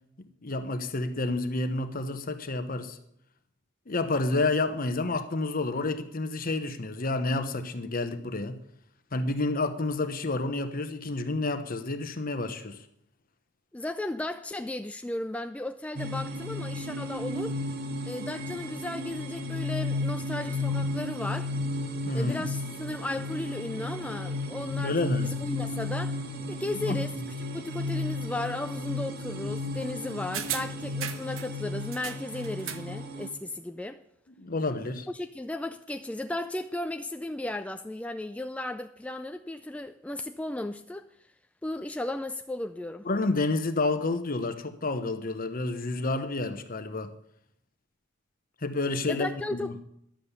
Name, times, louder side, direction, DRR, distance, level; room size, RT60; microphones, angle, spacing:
voice 1, 0.2-3.0 3.9-8.6 9.1-12.8 22.1-22.5 24.8-25.3 26.9-27.0 34.3-35.1 43.0-47.1 48.6-49.7, left 2 dB, 45° left, 1.0 m, -29 dB
voice 2, 13.7-17.5 18.0-21.5 22.1-27.1 27.4-34.0 35.1-41.1 41.6-43.1 49.1-49.7, left 1 dB, 5° left, 0.3 m, -35 dB
sound 1, 16.0-33.3, left 2 dB, 50° right, 1.4 m, -34 dB
sound 2, 30.3-31.5 31.9-32.9 33.2-33.3, right 9 dB, 80° right, 0.9 m, -36 dB
11.5 x 7.7 x 6.9 m
head